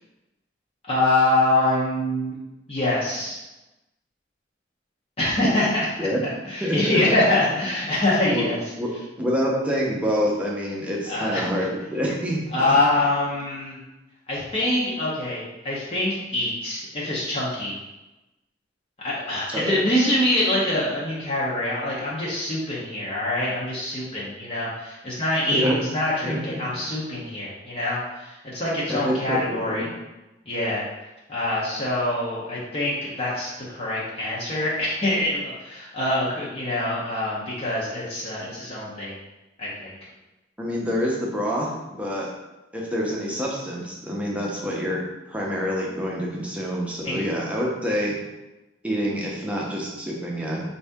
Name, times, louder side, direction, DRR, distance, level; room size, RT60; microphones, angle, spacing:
voice 1, 0.8-2.4 2.7-3.4 5.2-6.1 6.4-8.7 11.1-11.5 12.5-13.8 14.3-17.8 19.0-29.9 30.5-30.9 31.3-39.2 39.6-39.9 47.0-47.2, left 1 dB, 30° left, -7 dB, 0.8 m, -25 dB
voice 2, 6.6-7.0 8.3-8.4 8.8-8.9 9.2-12.4 19.5-19.9 25.5-25.8 26.2-26.4 28.9-29.9 40.6-42.3 42.7-45.0 45.3-48.1 48.8-50.6, equal, 5° right, -4 dB, 0.7 m, -26 dB
4.8 x 2.7 x 3.5 m, 1.0 s
head